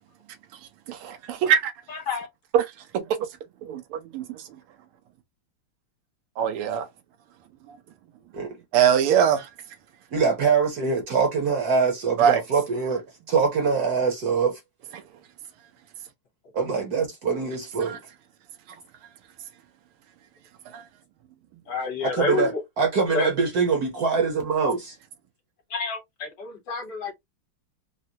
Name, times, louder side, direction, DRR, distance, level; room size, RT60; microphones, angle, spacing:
voice 1, 0.9-1.7 2.5-2.7 2.9-3.0 3.6-4.4 6.4-6.9 8.7-9.5 12.2-12.4 17.9-18.0 20.7-20.8, right 8 dB, 85° right, 1.6 m, -22 dB
voice 2, 1.9-2.3 21.7-22.6 23.1-23.3 24.6-24.7 25.7-27.1, left 4 dB, 60° left, 1.5 m, -29 dB
voice 3, 10.1-14.6 16.5-18.0 22.0-22.5 22.8-24.9, right 5 dB, 55° right, 1.1 m, -24 dB
4.0 x 2.1 x 2.7 m
omnidirectional pair, 2.4 m